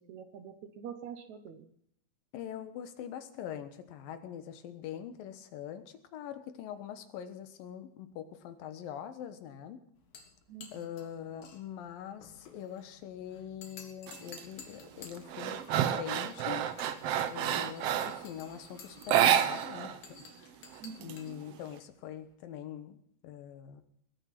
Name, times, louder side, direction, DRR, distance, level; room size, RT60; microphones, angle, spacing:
voice 1, 0.0-1.7 10.5-10.9 20.8-21.2, right 7 dB, 65° right, 9 dB, 2.1 m, -46 dB
voice 2, 2.3-9.8 10.7-16.7 17.3-20.6 21.0-23.8, left 10 dB, 80° left, 10 dB, 2.9 m, -43 dB
sound 1, 10.0-22.3, left 5 dB, 65° left, 3.5 m, -54 dB
sound 2, 14.1-14.4 14.8-18.3 19.0-20.0 20.2-20.3 20.7-21.7, right 10 dB, 90° right, 1.3 m, -29 dB
21.0 x 9.3 x 6.0 m, 0.69 s
omnidirectional pair, 4.1 m